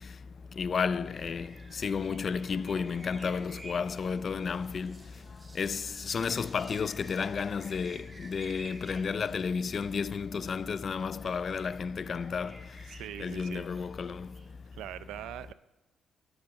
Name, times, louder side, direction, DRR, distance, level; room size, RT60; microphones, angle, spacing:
voice 1, 0.6-1.5 1.8-5.0 5.6-12.6 13.2-14.3, left 5 dB, 45° left, 0.3 m, -32 dB
sound 1, 1.0-14.5, right 1 dB, 15° right, 2.0 m, -52 dB
voice 2, 12.9-13.7 14.8-15.5, right 12 dB, 90° right, 0.4 m, -42 dB
9.5 x 6.1 x 7.2 m
cardioid pair, 90°, 0 cm